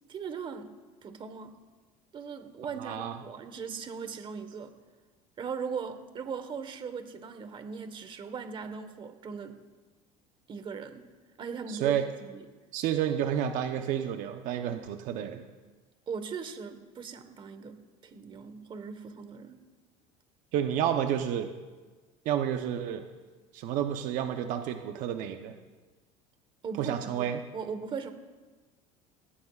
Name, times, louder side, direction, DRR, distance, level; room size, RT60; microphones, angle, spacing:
voice 1, 0.1-0.7 1.0-1.5 2.1-4.7 5.4-9.6 10.5-11.0 11.4-12.4 16.1-19.6 26.6-27.2 27.5-28.1, right 6 dB, 35° right, 8 dB, 1.3 m, -39 dB
voice 2, 2.8-3.2 11.7-12.1 12.7-15.4 20.5-21.5 22.2-23.0 23.5-25.5 26.8-27.4, right 9 dB, 65° right, 5 dB, 0.9 m, -30 dB
18.5 x 17.0 x 2.5 m, 1.3 s
supercardioid pair, 120°, 15 cm